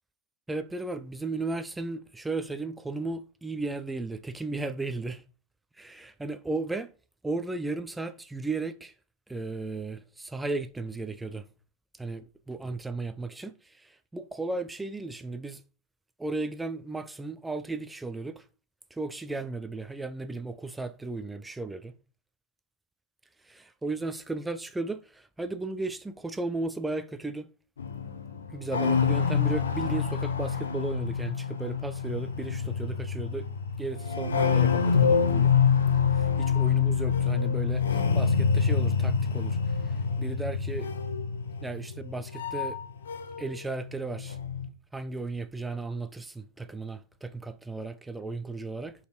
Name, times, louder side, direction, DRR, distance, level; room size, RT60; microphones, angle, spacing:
voice 1, 0.5-5.2 5.8-6.9 7.2-8.9 9.3-11.5 12.0-15.6 16.2-18.4 18.9-21.9 23.5-27.5 28.5-33.5 33.8-35.5 36.1-39.6 39.8-40.9 41.6-42.8 43.4-44.4 44.9-48.9, right 3 dB, 10° right, 0.7 m, -35 dB
sound 1, 27.8-43.6 43.8-44.7, left 6 dB, 70° left, 0.8 m, -26 dB
5.1 x 4.2 x 4.5 m
figure-of-eight pair, 85°, 0 cm